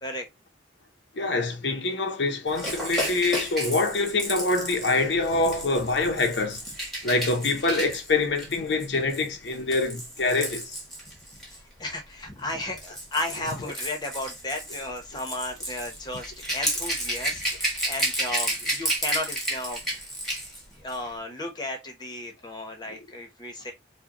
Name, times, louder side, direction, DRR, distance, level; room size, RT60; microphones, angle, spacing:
voice 1, 1.1-6.6 7.0-10.8, left 3 dB, 70° left, 0.8 m, -25 dB
Rattle / Rattle (instrument), 2.5-11.6 12.5-20.6 20.9-21.1, right 1 dB, ahead, 1.4 m, -32 dB
voice 2, 11.5-19.8 20.8-23.7, left 1 dB, 25° left, 1.0 m, -34 dB
4.7 x 2.3 x 2.9 m
head